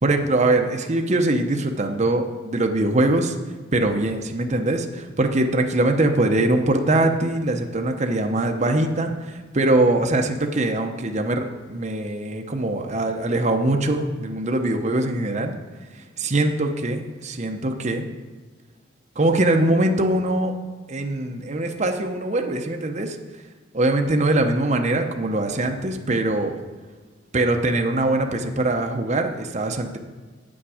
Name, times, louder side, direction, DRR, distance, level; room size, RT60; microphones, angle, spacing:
voice 1, 0.0-3.4 3.7-15.6 15.9-18.1 19.2-20.5 20.9-23.2 23.7-26.6 27.3-30.0, right 2 dB, 35° right, 4 dB, 0.7 m, -22 dB
8.7 x 8.0 x 4.9 m, 1.4 s
head